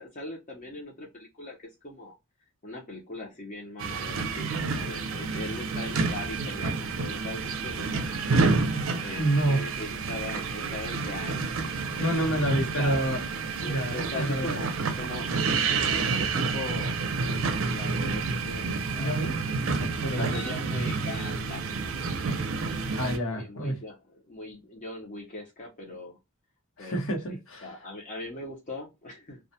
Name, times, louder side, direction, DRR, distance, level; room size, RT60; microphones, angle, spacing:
voice 1, 0.0-1.6 1.8-2.1 2.6-8.1 9.0-11.4 12.0-13.2 13.6-15.4 15.8-19.2 20.1-22.1 22.8-26.2 26.8-27.0 27.6-29.4, left 2 dB, 40° left, 0.6 m, -40 dB
sound 1, 3.8-23.2, right 4 dB, 75° right, 0.5 m, -29 dB
voice 2, 9.2-9.7 12.0-13.2 13.6-14.6 19.0-19.4 19.6-20.3 22.9-23.8 26.8-27.7, right 1 dB, 70° left, 1.0 m, -28 dB
2.3 x 2.1 x 2.7 m
head